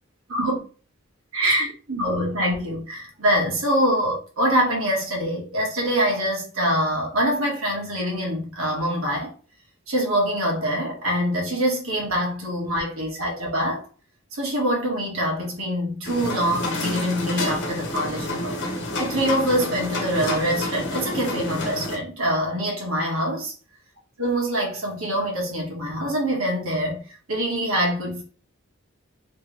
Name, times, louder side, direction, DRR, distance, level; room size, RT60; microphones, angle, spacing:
voice 1, 1.3-9.3 9.9-13.8 14.3-18.6 18.9-23.5 24.2-28.2, equal, 75° right, 1.6 m, -24 dB
sound 1, 16.0-22.0, left 1 dB, 55° left, 1.0 m, -29 dB
3.4 x 3.0 x 3.3 m
head